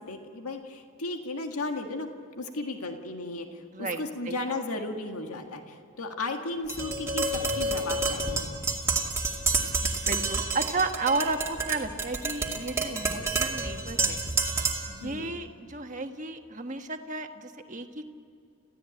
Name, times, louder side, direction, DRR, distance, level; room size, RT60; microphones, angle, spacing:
voice 1, 0.1-2.1 2.4-8.5 15.0-15.3, left 2 dB, 85° left, 4 dB, 1.8 m, -35 dB
voice 2, 3.7-4.6 9.8-14.2 14.9-18.0, right 3 dB, 35° right, 5 dB, 1.4 m, -33 dB
Tap, 6.7-15.0, right 3 dB, 10° right, 2.2 m, -29 dB
28.0 x 16.0 x 9.0 m, 2.7 s
head